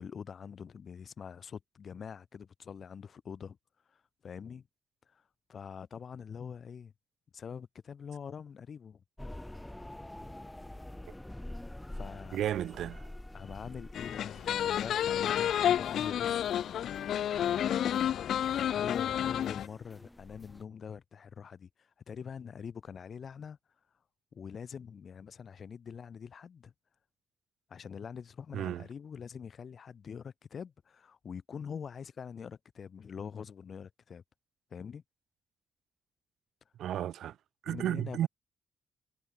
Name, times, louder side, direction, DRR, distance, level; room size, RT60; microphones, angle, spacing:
voice 1, 0.0-3.6 3.9-4.7 5.1-5.2 5.5-6.9 7.3-9.0 11.9-12.4 13.3-16.9 17.4-23.6 24.3-26.7 27.7-34.2 34.7-35.0 37.7-38.3, left 7 dB, 40° left, 2.4 m, -44 dB
sound 1, 9.2-20.7, left 1 dB, 5° left, 2.0 m, -47 dB
voice 2, 12.3-13.1 28.5-28.9 36.8-37.4 37.6-38.3, right 11 dB, 90° right, 1.6 m, -33 dB
sound 2, 13.9-19.7, left 10 dB, 70° left, 0.9 m, -30 dB
wide cardioid pair, 165°, 0 cm